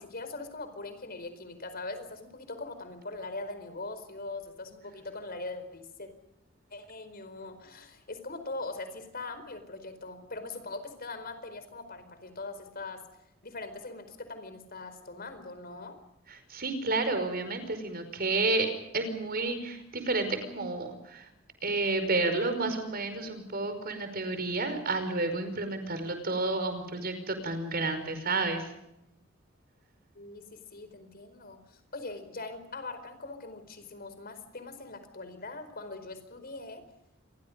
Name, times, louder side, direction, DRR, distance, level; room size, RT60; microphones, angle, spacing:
voice 1, 0.0-6.1 6.7-13.0 13.4-16.0 30.1-36.8, left 3 dB, 50° left, 10 dB, 4.7 m, -41 dB
voice 2, 16.3-21.3 21.6-28.7, right 3 dB, 50° right, 9 dB, 5.2 m, -31 dB
28.0 x 23.0 x 5.3 m, 0.84 s
head